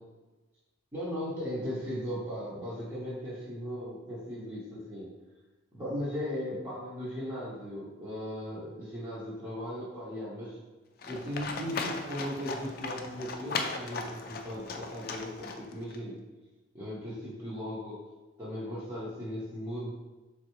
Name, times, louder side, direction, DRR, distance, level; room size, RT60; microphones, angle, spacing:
voice 1, 0.9-5.1 5.7-10.6 11.1-16.2 16.7-18.0 18.4-19.9, equal, 20° right, -11 dB, 0.8 m, -37 dB
Livestock farm animals working animals, 11.0-16.0, left 4 dB, 50° left, 0.4 m, -37 dB
3.9 x 3.3 x 3.0 m, 1.1 s
head